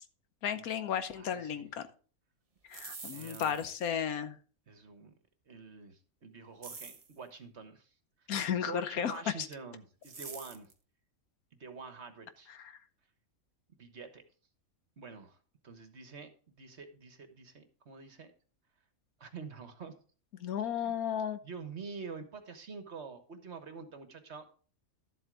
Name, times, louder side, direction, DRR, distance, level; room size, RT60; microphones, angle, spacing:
voice 1, 0.4-1.8 2.7-4.4 8.3-9.5 12.5-12.7 20.4-21.4, left 8 dB, 90° left, 11 dB, 1.4 m, -34 dB
voice 2, 1.1-1.7 3.1-3.7 4.7-5.1 5.5-7.9 8.2-10.7 11.6-12.6 13.8-14.2 15.0-15.4 15.6-18.3 19.2-19.9 20.8-20.9 21.4-24.5, right 5 dB, 50° right, 8 dB, 1.5 m, -47 dB
sound 1, 2.6-3.8 6.6-7.1 10.0-10.7, right 4 dB, 30° right, 0.8 m, -46 dB
12.0 x 7.9 x 3.8 m, 0.39 s
omnidirectional pair, 1.5 m